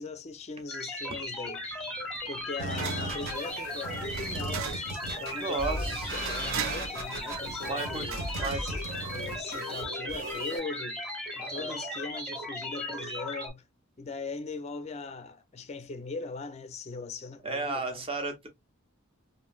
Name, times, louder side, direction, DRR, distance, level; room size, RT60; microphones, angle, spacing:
voice 1, 0.0-1.9 2.3-8.2 8.5-13.6 14.0-18.0, left 3 dB, 30° left, 0.4 m, -40 dB
sound 1, 0.7-13.5, left 1 dB, 5° left, 0.8 m, -37 dB
sound 2, 1.2-9.5, right 9 dB, 70° right, 0.3 m, -42 dB
sound 3, 2.6-10.6, right 1 dB, 45° right, 1.1 m, -37 dB
voice 2, 5.4-6.2 7.6-8.8 11.4-11.8 17.4-18.5, right 3 dB, 25° right, 0.7 m, -34 dB
3.0 x 2.5 x 2.3 m
head